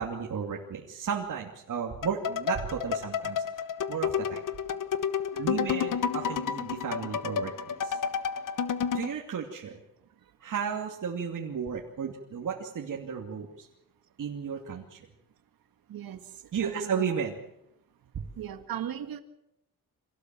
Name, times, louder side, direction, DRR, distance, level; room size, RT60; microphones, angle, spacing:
voice 1, 0.0-3.4 3.9-4.4 5.4-8.0 8.9-9.8 10.4-13.7 14.2-15.0 16.5-17.4, right 7 dB, 60° right, -1 dB, 2.7 m, -33 dB
sound 1, 2.0-9.1, left 7 dB, 65° left, 1.2 m, -31 dB
voice 2, 5.3-5.7 15.9-16.2 16.6-17.0 18.4-19.2, right 10 dB, 80° right, 9 dB, 2.0 m, -38 dB
25.5 x 18.0 x 7.6 m, 0.83 s
cardioid pair, 95°, 35 cm